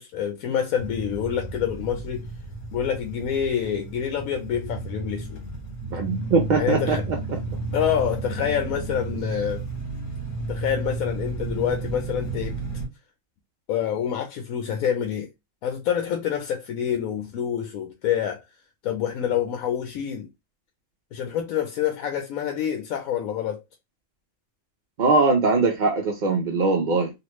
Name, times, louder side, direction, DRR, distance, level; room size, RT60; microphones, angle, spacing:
voice 1, 0.0-2.2 2.7-5.4 6.6-7.0 7.7-9.6 10.5-12.6 13.7-15.3 15.6-18.4 18.8-20.3 21.1-23.6, left 9 dB, 80° left, 1.0 m, -27 dB
sound 1, 0.8-12.9, right 3 dB, 60° left, 1.5 m, -32 dB
voice 2, 5.9-7.4 25.0-27.1, right 3 dB, 60° right, 0.5 m, -21 dB
3.3 x 2.4 x 3.0 m
omnidirectional pair, 1.5 m